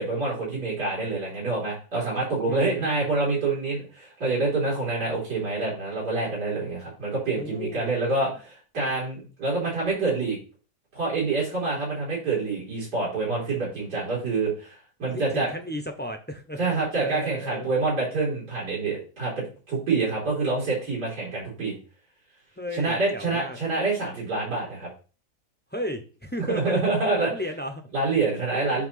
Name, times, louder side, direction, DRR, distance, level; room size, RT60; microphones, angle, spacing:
voice 1, 0.0-10.4 10.9-14.7 15.0-15.5 16.6-21.8 22.7-24.9 26.5-27.3 27.9-28.9, right 3 dB, 85° right, -7 dB, 3.8 m, -27 dB
voice 2, 2.5-3.1 7.3-7.9 15.1-16.6 17.0-17.7 22.6-23.6 25.7-26.9 27.2-27.9 28.3-28.8, equal, 10° left, 5 dB, 0.5 m, -34 dB
8.7 x 2.9 x 5.6 m, 0.35 s
omnidirectional pair, 1.7 m